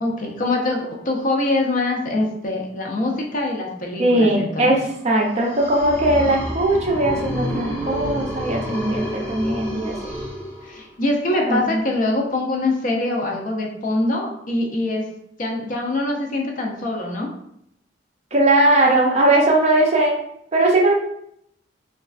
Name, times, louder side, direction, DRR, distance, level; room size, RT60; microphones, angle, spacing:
voice 1, 0.0-4.7 10.6-15.1 15.4-17.3, left 2 dB, 45° left, 1 dB, 0.5 m, -24 dB
voice 2, 4.0-9.9 11.3-11.8 18.3-20.1 20.5-20.9, right 1 dB, 35° right, 0 dB, 0.5 m, -19 dB
sound 1, 5.2-11.1, equal, 10° left, 1.0 m, -29 dB
3.1 x 2.3 x 2.4 m, 0.73 s
head